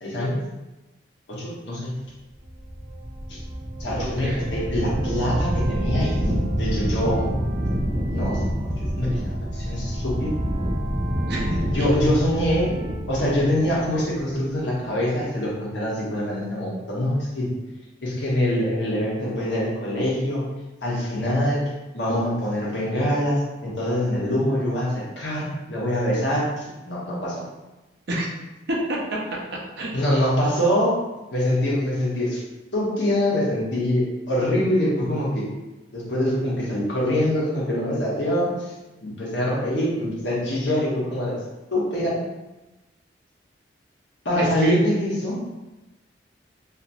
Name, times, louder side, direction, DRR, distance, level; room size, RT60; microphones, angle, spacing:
voice 1, 0.0-0.4 1.3-1.9 3.3-3.4 3.8-7.3 8.1-10.3 11.7-12.7 13.1-17.5 18.0-20.4 20.8-21.6 21.9-27.4 29.9-30.9 31.3-32.4 32.7-35.5 35.9-38.7 39.0-41.4 41.7-42.2 44.2-45.4, left 1 dB, 70° left, -6 dB, 1.0 m, -24 dB
sound 1, 2.4-14.5, equal, 20° right, 0.3 m, -27 dB
voice 2, 4.0-4.4 11.3-11.9 28.1-28.3 28.7-29.2 29.8-30.0 44.4-44.8, right 1 dB, 60° right, -3 dB, 0.6 m, -28 dB
2.9 x 2.5 x 2.5 m, 1.1 s
head